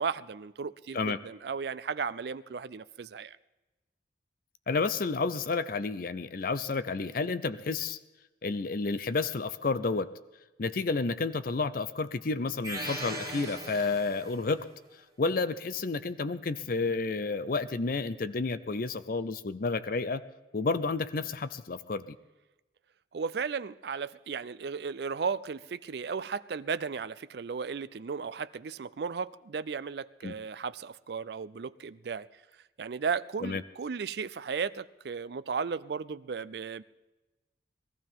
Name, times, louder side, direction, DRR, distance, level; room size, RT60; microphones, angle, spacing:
voice 1, 0.0-3.4 23.1-32.3 32.8-36.8, right 5 dB, 60° right, 0.4 m, -35 dB
voice 2, 4.7-8.0 8.4-10.1 10.6-14.7 15.2-20.2 20.5-22.2 30.2-30.3 33.4-33.6, left 4 dB, 50° left, 0.5 m, -30 dB
sound 1, 12.6-14.5, right 1 dB, 20° right, 1.7 m, -38 dB
22.0 x 14.5 x 3.6 m
head